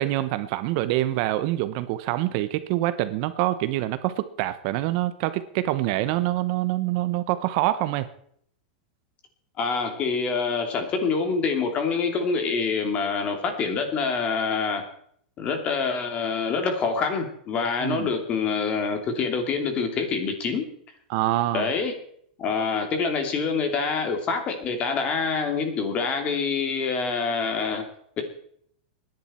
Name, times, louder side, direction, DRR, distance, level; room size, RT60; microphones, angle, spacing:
voice 1, 0.0-8.1 17.8-18.1 21.1-21.7, right 15 dB, 45° right, 13 dB, 0.9 m, -25 dB
voice 2, 9.6-14.8 15.4-20.7 21.5-21.9 22.4-27.8 28.2-28.3, left 5 dB, 25° left, 6 dB, 2.8 m, -26 dB
24.0 x 10.5 x 4.4 m, 0.66 s
supercardioid pair, 160°, 5 cm